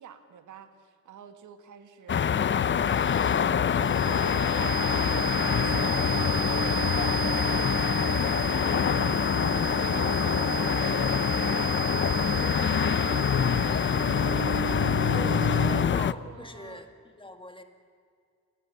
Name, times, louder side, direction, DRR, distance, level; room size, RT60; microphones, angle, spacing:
voice 1, 0.0-3.5 3.7-11.3 11.8-13.0 15.0-16.8, right 8 dB, 80° right, 9 dB, 1.9 m, -47 dB
sound 1, 2.1-16.1, left 8 dB, 40° left, 0.7 m, -25 dB
sound 2, 2.5-16.1, right 11 dB, 50° right, 0.5 m, -34 dB
voice 2, 15.1-16.9 17.1-17.6, left 2 dB, 15° left, 7 dB, 2.1 m, -42 dB
28.0 x 21.0 x 7.0 m, 2.2 s
cardioid pair, 120°, 30 cm